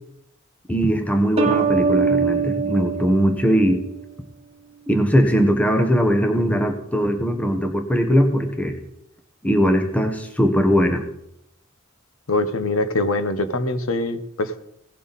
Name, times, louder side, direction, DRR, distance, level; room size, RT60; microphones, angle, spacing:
voice 1, 0.7-3.8 4.9-8.8 9.4-11.0, equal, 5° left, 5 dB, 1.2 m, -20 dB
sound 1, 1.4-4.0, right 5 dB, 30° right, 1.7 m, -23 dB
voice 2, 12.3-14.6, left 2 dB, 85° left, 11 dB, 1.1 m, -23 dB
17.5 x 7.5 x 4.2 m, 0.77 s
head